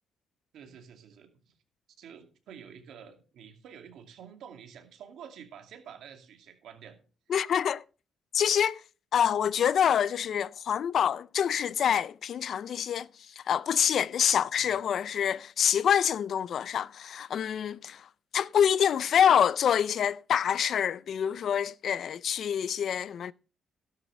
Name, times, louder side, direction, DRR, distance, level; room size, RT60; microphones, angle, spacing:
voice 1, 0.5-1.6 2.0-7.0 14.3-14.7, right 8 dB, 75° right, 2.4 m, -49 dB
voice 2, 7.3-7.8 8.3-8.8 9.1-13.1 13.4-18.1 18.3-23.3, left 8 dB, 60° left, 0.5 m, -26 dB
12.5 x 12.0 x 3.3 m
cardioid pair, 90°, 0 cm